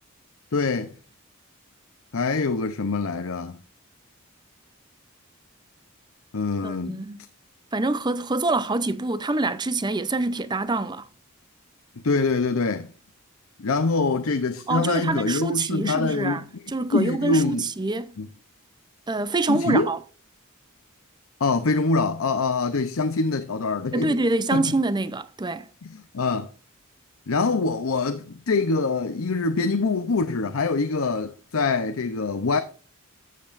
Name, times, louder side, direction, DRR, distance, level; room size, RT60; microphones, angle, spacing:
voice 1, 0.5-0.9 2.1-3.6 6.3-7.0 12.0-12.9 13.6-16.4 16.9-17.6 18.2-18.3 19.5-19.9 21.4-24.2 24.5-24.6 25.8-26.5 27.3-32.6, left 3 dB, 80° left, 0.7 m, -24 dB
voice 2, 6.6-7.2 7.7-11.1 14.7-18.1 19.1-20.0 23.9-25.7, right 2 dB, 20° right, 0.6 m, -26 dB
14.0 x 7.7 x 2.5 m
head